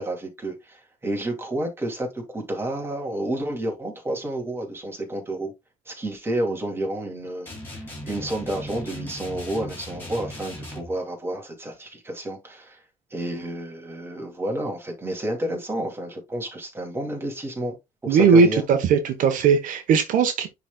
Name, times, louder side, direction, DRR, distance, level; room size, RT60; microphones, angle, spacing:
voice 1, 0.0-5.5 5.9-12.8 13.1-17.8 18.0-18.6, right 1 dB, 15° right, 2.5 m, -30 dB
sound 1, 7.5-10.9, left 1 dB, 15° left, 2.9 m, -38 dB
voice 2, 18.1-20.5, right 5 dB, 75° right, 1.0 m, -18 dB
10.5 x 4.1 x 2.2 m
cardioid pair, 150°, 14 cm